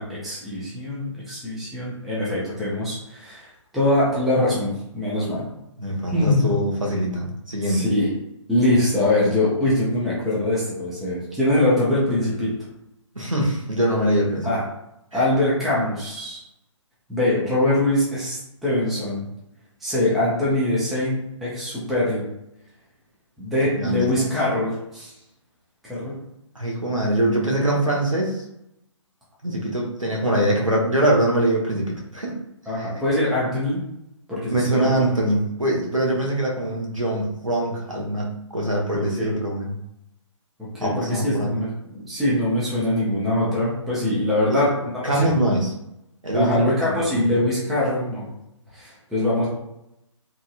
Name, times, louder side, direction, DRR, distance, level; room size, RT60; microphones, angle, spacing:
voice 1, 0.0-5.5 6.1-6.5 7.7-8.1 8.5-12.5 14.4-14.6 15.1-16.4 17.1-19.3 19.8-22.2 23.4-25.1 25.8-26.2 32.7-33.8 34.3-35.1 39.2-39.3 40.8-45.3 46.3-48.3 48.7-49.5, left 1 dB, ahead, -9 dB, 0.4 m, -23 dB
voice 2, 5.8-7.8 13.1-14.5 15.1-15.2 23.7-24.2 26.5-28.4 29.4-32.3 32.8-32.9 34.5-39.8 40.8-41.5 44.5-44.6 45.0-45.7 46.2-47.2, right 1 dB, 85° right, -2 dB, 0.9 m, -23 dB
2.9 x 2.6 x 2.4 m, 0.84 s
figure-of-eight pair, 135°, 16 cm